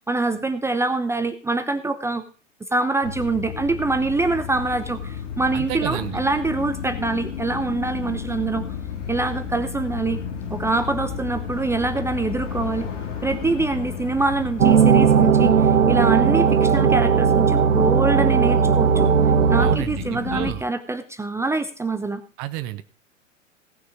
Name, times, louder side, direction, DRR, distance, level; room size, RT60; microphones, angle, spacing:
voice 1, 0.1-2.2 2.7-8.6 9.1-10.2 10.5-12.9 13.2-19.1 19.5-22.2, right 3 dB, 5° right, 8 dB, 0.8 m, -25 dB
sound 1, 3.0-20.5, left 7 dB, 70° left, 3.0 m, -32 dB
voice 2, 5.5-6.2 19.6-20.6 22.4-22.8, right 14 dB, 35° right, 10 dB, 1.0 m, -30 dB
sound 2, 14.6-19.8, right 7 dB, 80° right, 1.0 m, -17 dB
17.5 x 6.5 x 4.9 m, 0.38 s
figure-of-eight pair, 100°, 38 cm